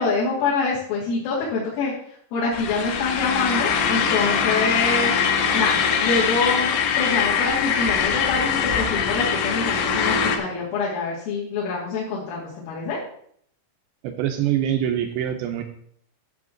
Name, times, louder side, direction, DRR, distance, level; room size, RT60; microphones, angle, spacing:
voice 1, 0.0-1.9 2.3-5.1 5.5-6.7 7.0-13.0, left 4 dB, 90° left, -8 dB, 5.0 m, -25 dB
sound 1, 2.5-10.4, left 7 dB, 75° left, 3.0 m, -22 dB
voice 2, 14.0-15.6, right 10 dB, 85° right, 6 dB, 2.6 m, -24 dB
12.0 x 6.8 x 3.8 m, 0.65 s
omnidirectional pair, 5.6 m